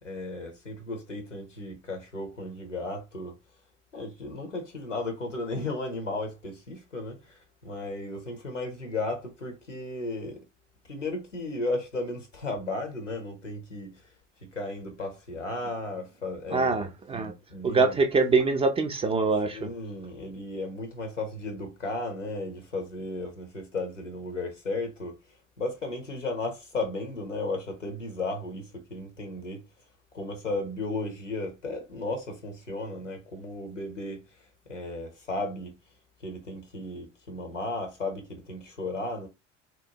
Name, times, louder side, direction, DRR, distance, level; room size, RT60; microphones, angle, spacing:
voice 1, 0.0-3.4 3.9-10.4 10.9-14.0 14.4-16.9 17.5-18.0 19.5-25.2 25.6-29.6 30.1-34.2 34.7-35.7 36.2-39.3, left 2 dB, 90° left, 0.7 m, -34 dB
voice 2, 16.5-17.3 17.6-19.7, right 4 dB, 15° right, 0.3 m, -24 dB
2.8 x 2.1 x 2.7 m
figure-of-eight pair, 65°, 36 cm